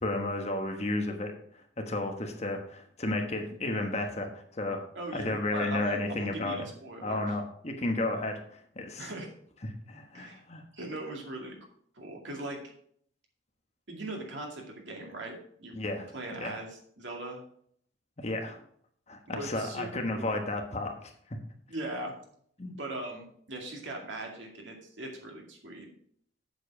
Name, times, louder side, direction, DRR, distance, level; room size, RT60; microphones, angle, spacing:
voice 1, 0.0-4.8 5.1-6.6 7.0-9.1 9.6-10.6 15.7-16.6 18.2-18.6 19.1-21.4 22.6-22.7, left 2 dB, 35° left, 4 dB, 1.2 m, -33 dB
voice 2, 4.9-7.3 9.0-9.3 10.1-10.4 10.7-11.6 11.9-12.6 13.9-15.7 16.1-17.4 19.3-19.9 20.2-20.4 21.7-22.1 22.7-25.9, right 2 dB, 80° right, 1 dB, 2.3 m, -40 dB
7.7 x 7.1 x 4.8 m, 0.63 s
head